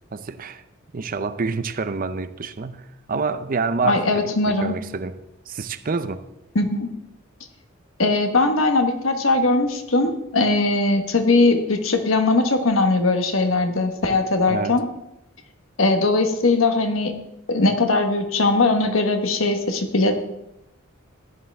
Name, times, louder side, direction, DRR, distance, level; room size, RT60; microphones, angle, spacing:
voice 1, 0.1-0.6 0.9-5.2 5.5-6.2 14.5-14.7, right 4 dB, 45° right, 0.6 m, -27 dB
voice 2, 3.8-4.7 6.5-6.9 8.0-14.8 15.8-17.1 17.5-20.3, left 2 dB, 70° left, 1.4 m, -20 dB
15.0 x 10.0 x 3.5 m
head